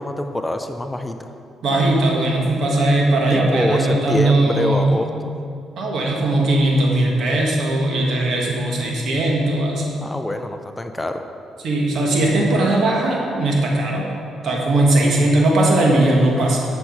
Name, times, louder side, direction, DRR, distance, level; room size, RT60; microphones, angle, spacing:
voice 1, 0.0-1.3 3.3-5.3 10.0-11.2, left 1 dB, 15° left, 6 dB, 0.5 m, -25 dB
voice 2, 1.6-5.0 5.8-9.8 11.6-14.1 14.4-16.6, right 2 dB, 65° right, -2 dB, 1.8 m, -18 dB
9.1 x 6.4 x 4.8 m, 2.4 s
cardioid pair, 90°, 0 cm